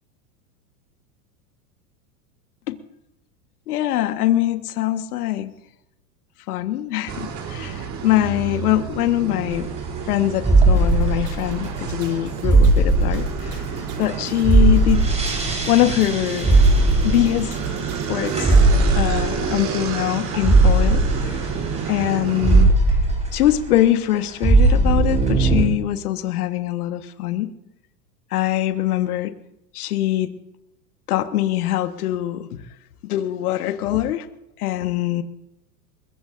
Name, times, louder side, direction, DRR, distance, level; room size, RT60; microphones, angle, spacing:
voice 1, 3.7-5.5 6.5-9.7 10.1-13.6 14.0-15.1 15.7-16.6 17.0-17.6 18.1-18.6 18.9-21.5 21.9-22.7 23.3-27.5 28.3-29.3 29.7-30.3 31.1-32.6 33.0-34.3 34.6-35.2, left 13 dB, 75° left, 8 dB, 1.5 m, -23 dB
sound 1, 7.1-22.7, right 6 dB, 40° right, 3.5 m, -30 dB
sound 2, 9.5-10.1 10.4-14.2 14.4-23.8 24.1-25.7, right 2 dB, 15° right, 4.9 m, -18 dB
sound 3, 10.8-18.8, right 6 dB, 80° right, 6.2 m, -37 dB
22.5 x 21.5 x 2.6 m, 0.86 s
hypercardioid pair, 110°, 46 cm